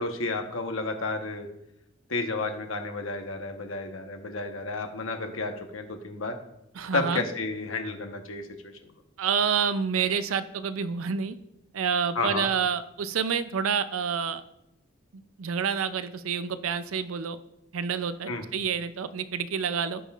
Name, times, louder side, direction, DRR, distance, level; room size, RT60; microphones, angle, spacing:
voice 1, 0.0-1.5 2.1-6.4 6.9-8.7 12.1-12.5 18.3-18.4, left 3 dB, 75° left, 4 dB, 1.1 m, -31 dB
voice 2, 6.8-7.2 9.2-11.4 11.7-14.4 15.4-17.4 17.7-20.0, right 6 dB, 80° right, 12 dB, 0.5 m, -28 dB
16.5 x 5.5 x 2.4 m, 0.86 s
head